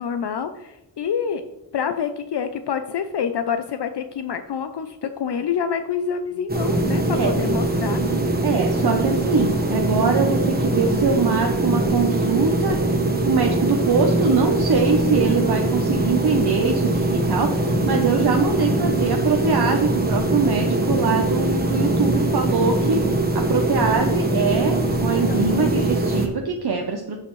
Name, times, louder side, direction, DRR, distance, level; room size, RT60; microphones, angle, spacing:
voice 1, 0.0-1.4 1.7-8.0 15.2-15.7 18.5-18.8 25.3-25.8, left 7 dB, 70° left, 8 dB, 0.6 m, -27 dB
sound 1, 6.5-26.3, right 2 dB, 20° right, 1.3 m, -22 dB
voice 2, 8.4-12.8 13.3-23.0 23.3-27.2, right 5 dB, 60° right, 3 dB, 0.9 m, -23 dB
10.5 x 6.7 x 3.1 m, 0.97 s
wide cardioid pair, 60°, 43 cm